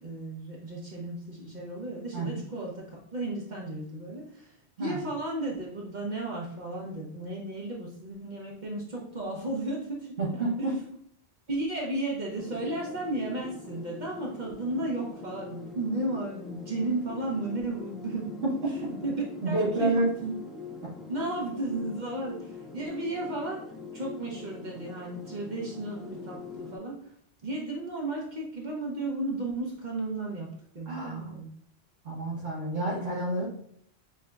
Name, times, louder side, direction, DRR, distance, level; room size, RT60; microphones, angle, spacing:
voice 1, 0.0-10.7 11.5-18.5 18.8-20.3 21.1-23.6 23.9-27.0 27.4-31.5, right 2 dB, 45° right, -2 dB, 0.9 m, -34 dB
voice 2, 10.2-10.8 18.4-18.7 19.4-20.1 30.8-31.4 32.0-33.4, right 2 dB, 60° right, -6 dB, 1.3 m, -29 dB
sound 1, 12.4-26.8, left 4 dB, ahead, 0.4 m, -43 dB
6.6 x 2.8 x 2.3 m, 0.66 s
omnidirectional pair, 1.1 m